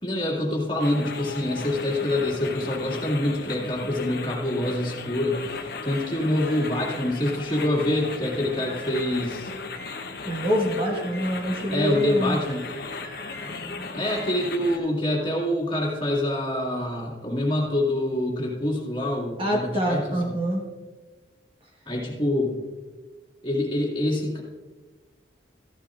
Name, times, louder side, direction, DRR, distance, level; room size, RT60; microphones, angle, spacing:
voice 1, 0.0-9.5 11.7-12.7 13.9-20.0 21.9-22.5 23.4-24.4, left 1 dB, 25° left, -3 dB, 2.1 m, -26 dB
sound 1, 0.8-14.8, left 4 dB, 55° left, 0.8 m, -36 dB
sound 2, 5.7-14.8, equal, 45° right, 2.1 m, -46 dB
voice 2, 10.2-12.4 19.4-20.6, equal, 25° right, -1 dB, 1.3 m, -26 dB
14.0 x 12.0 x 2.5 m, 1.3 s
head